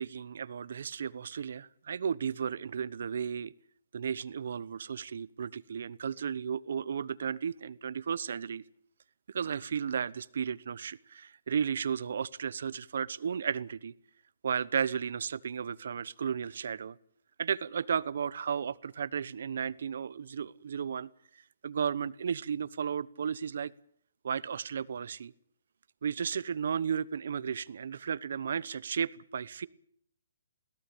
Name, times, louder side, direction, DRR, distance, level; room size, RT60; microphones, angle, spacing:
voice 1, 0.0-3.5 3.9-8.6 9.3-13.9 14.4-17.0 17.4-21.1 21.6-23.7 24.2-25.3 26.0-29.7, right 7 dB, 70° right, 20 dB, 1.0 m, -34 dB
22.0 x 17.5 x 8.6 m, 0.65 s
hypercardioid pair, 145°, 0 cm